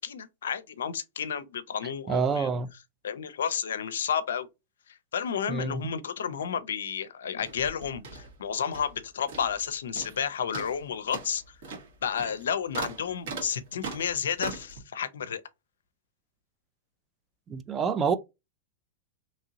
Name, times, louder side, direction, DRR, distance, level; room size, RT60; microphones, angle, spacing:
voice 1, 0.0-2.5 3.0-4.5 4.9-11.6 12.0-15.4, left 8 dB, 80° left, 0.4 m, -31 dB
voice 2, 2.1-2.7 5.5-5.9 17.5-18.2, right 5 dB, 25° right, 0.4 m, -27 dB
sound 1, 7.4-9.0 9.3-9.7 9.9-10.2 10.5-14.8, right 4 dB, 70° right, 1.5 m, -40 dB
2.9 x 2.7 x 2.6 m
hypercardioid pair, 110°, 0 cm